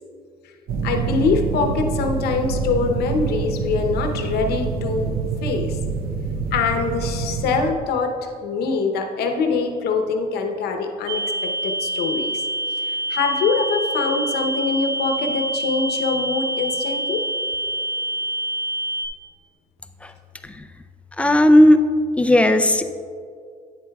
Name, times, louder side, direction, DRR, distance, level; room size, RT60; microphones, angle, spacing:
sound 1, 0.7-7.7, right 5 dB, 60° right, 0.7 m, -26 dB
voice 1, 0.8-5.1 5.4-5.8 6.5-12.4 13.1-17.2, left 4 dB, 70° left, 4 dB, 0.9 m, -23 dB
sound 2, 11.1-19.1, right 1 dB, 80° right, 1.1 m, -26 dB
voice 2, 21.2-21.8 22.2-22.8, left 1 dB, 5° left, 8 dB, 0.4 m, -14 dB
9.6 x 7.9 x 2.3 m, 2.3 s
cardioid pair, 110°, 17 cm